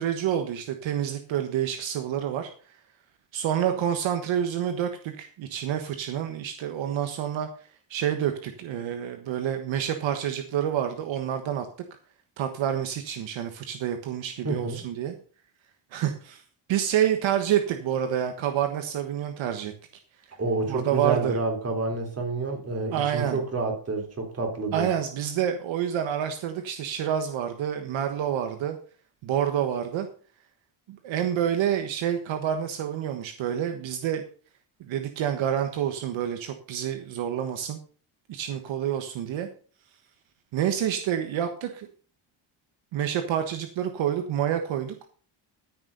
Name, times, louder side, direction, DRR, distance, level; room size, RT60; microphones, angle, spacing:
voice 1, 0.0-2.5 3.3-7.5 7.9-11.7 12.4-15.1 15.9-16.4 16.7-19.7 20.7-21.4 22.9-23.4 24.7-28.8 29.2-30.1 30.9-34.2 34.8-37.8 38.3-39.5 40.5-41.9 42.9-44.9, right 10 dB, 70° right, 7 dB, 1.5 m, -28 dB
voice 2, 14.4-14.8 20.4-24.9, right 3 dB, 30° right, 2 dB, 3.8 m, -29 dB
14.0 x 6.6 x 5.5 m, 0.41 s
cardioid pair, 140°, 47 cm